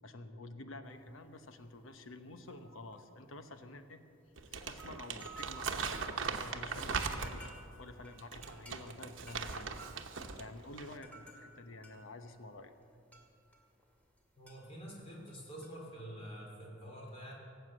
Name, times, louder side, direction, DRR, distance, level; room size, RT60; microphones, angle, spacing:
voice 1, 0.0-4.0 4.5-7.5 7.8-9.8 10.3-12.7, left 2 dB, 85° left, 8 dB, 1.0 m, -50 dB
sound 1, 0.9-1.3 1.6-1.8 2.3-3.8 4.3-4.4 4.5-14.2 14.5-15.8, right 3 dB, 10° left, 2.2 m, -56 dB
Crumpling crinkling, 4.4-7.6 8.2-10.4 10.7-11.0, right 5 dB, 70° right, 1.0 m, -39 dB
voice 2, 14.4-17.3, equal, 30° left, -2 dB, 3.6 m, -47 dB
17.5 x 8.1 x 7.8 m, 2.6 s
head